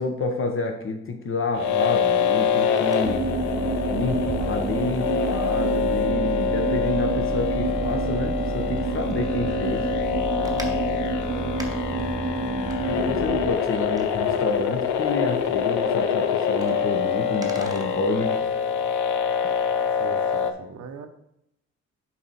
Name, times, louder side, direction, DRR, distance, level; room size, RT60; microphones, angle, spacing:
voice 1, 0.0-3.2 3.9-9.8 12.8-18.3, left 3 dB, 45° left, 4 dB, 1.2 m, -29 dB
sound 1, 1.5-20.5, left 7 dB, 75° left, 0.7 m, -25 dB
Wind, 2.5-18.5, right 2 dB, 10° right, 1.2 m, -44 dB
sound 2, 3.0-13.5, right 4 dB, 25° right, 0.5 m, -28 dB
voice 2, 20.0-21.1, right 6 dB, 65° right, 6 dB, 0.9 m, -40 dB
7.1 x 4.7 x 4.2 m, 0.80 s
cardioid pair, 90°, 30 cm